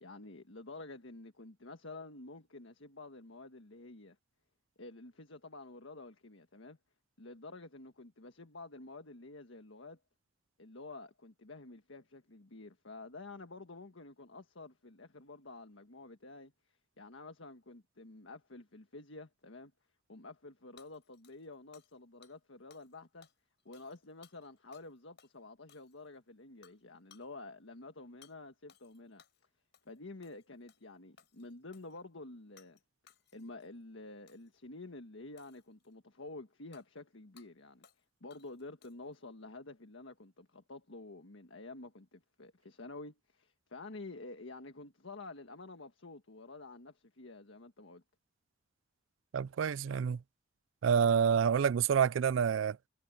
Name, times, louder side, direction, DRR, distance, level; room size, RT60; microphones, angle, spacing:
voice 1, 0.0-4.2 4.8-6.8 7.2-10.0 10.6-19.7 20.1-23.3 23.6-29.2 29.8-32.8 33.3-37.8 38.2-48.0, left 2 dB, 90° left, 1.5 m, -50 dB
Hammer / Shatter, 20.8-22.0 22.2-22.4 22.7-23.0 23.2-24.9 25.2-25.3 25.7-26.2 26.6-26.8 27.1-27.3 28.2-28.4 28.7-29.4 29.7-30.0 30.2-30.9 31.2-32.0 32.6-32.8 33.1-33.7 34.3-34.6 35.4-35.9 36.7-36.9 37.4-37.5 37.8-38.0 38.3-39.2, left 8 dB, 65° left, 5.0 m, -64 dB
voice 2, 49.3-50.2 50.8-52.8, right 7 dB, 90° right, 0.4 m, -28 dB
head